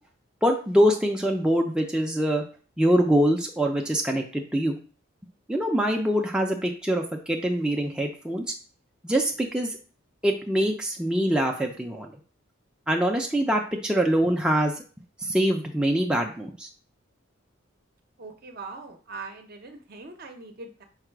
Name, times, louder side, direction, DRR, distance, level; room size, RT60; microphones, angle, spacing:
voice 1, 0.4-2.4 2.8-4.8 5.5-8.4 9.0-9.8 10.2-12.1 12.9-14.7 15.2-16.7, equal, 5° right, 1 dB, 0.4 m, -24 dB
voice 2, 18.2-20.8, right 3 dB, 50° right, 5 dB, 0.7 m, -41 dB
4.8 x 2.2 x 4.5 m, 0.38 s
head